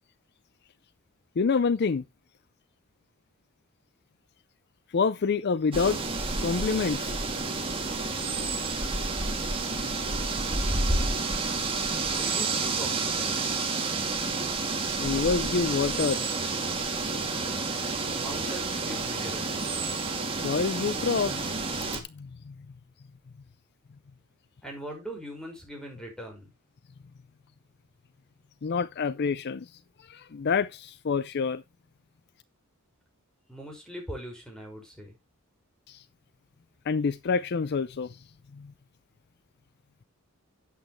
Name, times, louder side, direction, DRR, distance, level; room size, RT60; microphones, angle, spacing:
voice 1, 1.4-2.0 4.9-6.0 6.4-7.1 15.0-16.3 20.3-22.5 28.6-29.7 30.1-31.6 35.9-36.0 36.9-38.2 38.5-38.7, left 5 dB, 50° left, 0.5 m, -27 dB
sound 1, 5.7-22.0, right 3 dB, 25° right, 2.5 m, -30 dB
voice 2, 12.2-13.4 18.1-19.8 24.6-26.5 33.5-35.2, right 1 dB, 5° left, 5.4 m, -41 dB
11.5 x 8.6 x 3.1 m
head